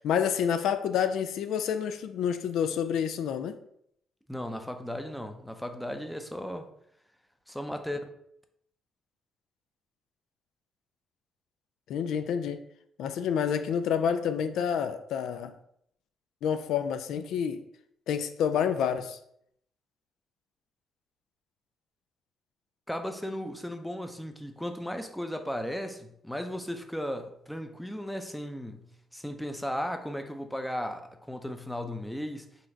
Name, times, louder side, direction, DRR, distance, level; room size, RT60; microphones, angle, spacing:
voice 1, 0.0-3.6 11.9-12.6 13.0-15.5 16.4-17.6 18.1-19.2, left 8 dB, 80° left, 0.3 m, -28 dB
voice 2, 4.3-6.7 7.5-8.0 22.9-32.5, equal, 5° left, 0.5 m, -36 dB
4.0 x 2.5 x 4.4 m
cardioid pair, 90°, 0 cm